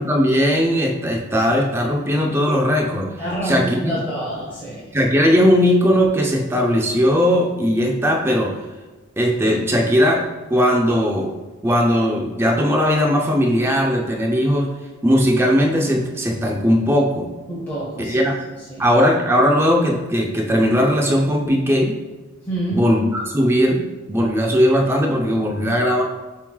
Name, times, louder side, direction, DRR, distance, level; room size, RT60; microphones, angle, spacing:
voice 1, 0.0-3.1 3.4-4.0 4.9-8.6 9.2-11.3 11.6-14.7 15.0-17.3 18.0-18.4 18.8-21.9 22.7-26.0, equal, 10° right, 1 dB, 0.4 m, -18 dB
voice 2, 3.2-4.9 17.5-18.2 18.7-18.9 22.5-22.9, right 1 dB, 10° left, -8 dB, 0.8 m, -27 dB
7.1 x 3.1 x 2.3 m, 1.2 s
head